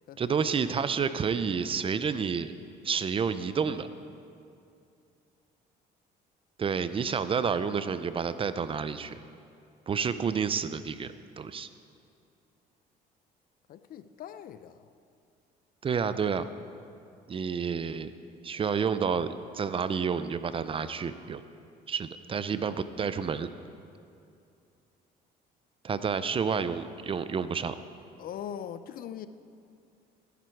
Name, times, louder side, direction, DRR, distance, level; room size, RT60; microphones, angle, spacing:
voice 1, 0.2-2.5 2.8-3.9 6.6-9.1 9.9-11.7 15.8-16.5 17.3-18.1 18.4-21.4 21.9-23.5 25.8-27.8, right 6 dB, 30° right, 13 dB, 0.6 m, -29 dB
voice 2, 13.7-14.8 28.2-29.3, left 9 dB, 60° left, 12 dB, 0.6 m, -41 dB
16.5 x 11.0 x 4.6 m, 2.5 s
cardioid pair, 110°, 17 cm